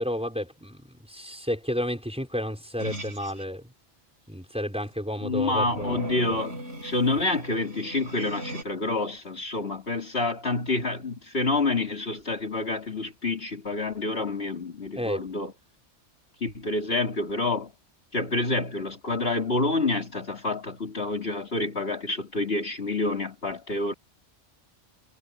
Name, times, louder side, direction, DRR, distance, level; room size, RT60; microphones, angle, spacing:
voice 1, 0.0-3.6 4.3-6.4 15.0-15.2, equal, 5° right, 5.8 m, -31 dB
sound 1, 2.8-3.4 5.7-8.6, right 1 dB, 80° right, 4.7 m, -38 dB
voice 2, 5.2-15.5 16.4-17.7 18.1-23.9, left 2 dB, 55° left, 3.6 m, -28 dB
omnidirectional pair, 1.2 m